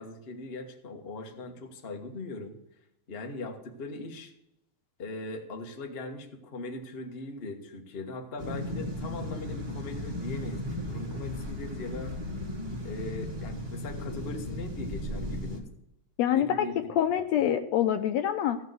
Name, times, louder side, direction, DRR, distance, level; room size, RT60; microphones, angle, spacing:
voice 1, 0.0-2.5 3.1-4.3 5.0-12.1 12.8-15.7 16.3-16.8, left 2 dB, 35° left, 3 dB, 0.9 m, -40 dB
sound 1, 8.4-15.6, left 1 dB, 20° right, 1.4 m, -36 dB
voice 2, 16.2-18.6, left 10 dB, 75° left, 8 dB, 1.7 m, -26 dB
16.0 x 5.5 x 7.9 m, 0.81 s
omnidirectional pair, 3.4 m